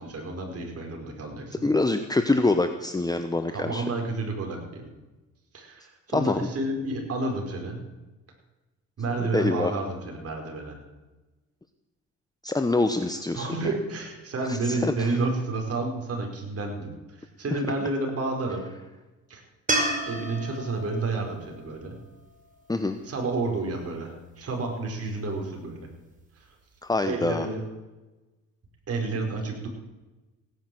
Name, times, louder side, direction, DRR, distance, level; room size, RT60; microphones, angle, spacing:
voice 1, 0.0-1.7 3.5-4.9 5.5-7.9 9.0-10.8 13.3-16.9 17.4-18.7 19.3-19.4 20.1-22.0 23.1-25.9 27.1-27.6 28.9-29.7, right 3 dB, 50° right, 1 dB, 4.8 m, -30 dB
voice 2, 1.6-3.8 6.1-6.5 9.2-9.7 12.4-13.7 14.4-15.2 17.5-17.6 22.7-23.0 26.8-27.5, left 2 dB, 15° left, 8 dB, 1.0 m, -25 dB
sound 1, 19.7-22.9 26.2-26.3, right 1 dB, 25° right, 4.7 m, -31 dB
17.0 x 10.5 x 7.8 m, 1.1 s
cardioid pair, 90°, 30 cm